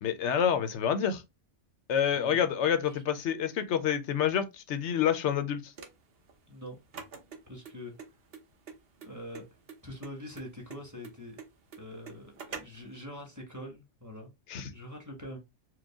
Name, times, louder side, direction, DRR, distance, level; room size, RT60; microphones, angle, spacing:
voice 1, 0.0-1.2 1.9-5.7 14.5-14.7, left 8 dB, 65° left, 0.8 m, -28 dB
sound 1, 5.7-12.9, right 5 dB, 50° right, 1.0 m, -46 dB
voice 2, 6.5-6.8 7.5-7.9 9.0-9.5 9.8-11.4 11.8-14.3 14.7-15.4, left 1 dB, 15° right, 1.3 m, -44 dB
4.6 x 2.2 x 3.5 m
omnidirectional pair, 1.4 m